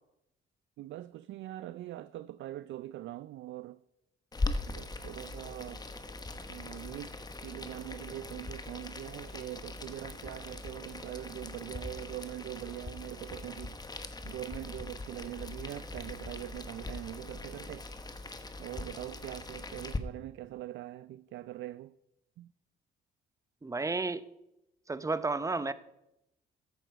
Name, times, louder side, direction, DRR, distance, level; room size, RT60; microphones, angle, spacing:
voice 1, 0.8-3.8 4.7-5.8 6.5-13.8 14.2-17.9 18.6-21.9 22.4-22.5, right 14 dB, 70° right, 0.4 m, -43 dB
Boiling, 4.3-20.0, left 2 dB, 20° left, 1.0 m, -40 dB
voice 2, 23.6-24.2 24.9-25.7, right 3 dB, 15° right, 0.7 m, -32 dB
14.0 x 9.2 x 4.6 m
cardioid pair, 90°, 20 cm